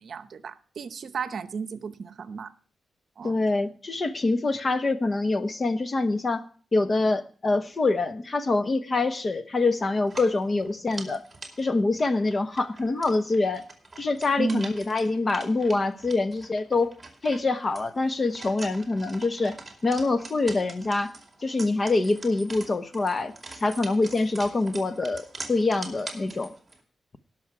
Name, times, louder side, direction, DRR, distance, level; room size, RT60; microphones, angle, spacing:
voice 1, 0.0-2.5 3.2-3.3 14.4-14.6, right 5 dB, 60° right, 0.8 m, -33 dB
voice 2, 3.2-6.5 6.7-11.2 11.6-13.6 14.0-16.9 17.2-19.6 19.8-21.1 21.4-23.3 23.6-26.5, left 3 dB, 30° left, 1.0 m, -25 dB
sound 1, 10.0-26.8, right 3 dB, 20° right, 2.5 m, -44 dB
18.5 x 6.4 x 4.8 m
wide cardioid pair, 130°, 0 cm